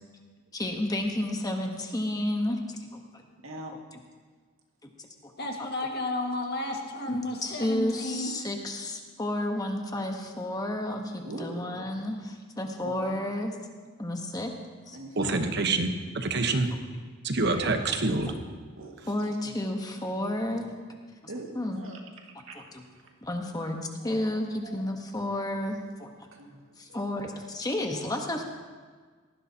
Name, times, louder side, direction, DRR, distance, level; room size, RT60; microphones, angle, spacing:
voice 1, 0.5-3.2 5.2-5.3 7.0-13.5 14.0-14.5 14.9-15.0 19.1-21.0 21.5-21.8 22.5-22.6 23.2-23.8 24.0-26.3 26.8-28.4, left 1 dB, 15° left, 3 dB, 1.1 m, -31 dB
voice 2, 3.4-3.8 11.2-11.9 12.8-13.2 14.9-15.7 16.0-16.1 17.4-17.6 18.8-19.5 20.1-20.6 21.3-22.0 22.5-22.6 22.9-23.1 24.0-24.3 24.6-24.8 26.3-27.1 28.1-28.2, right 1 dB, 70° right, 1 dB, 2.0 m, -43 dB
voice 3, 5.4-8.3, left 1 dB, 50° left, 1 dB, 1.8 m, -32 dB
voice 4, 15.2-16.7 17.2-18.3, right 3 dB, 50° right, 6 dB, 1.0 m, -26 dB
18.0 x 15.0 x 2.9 m, 1.5 s
head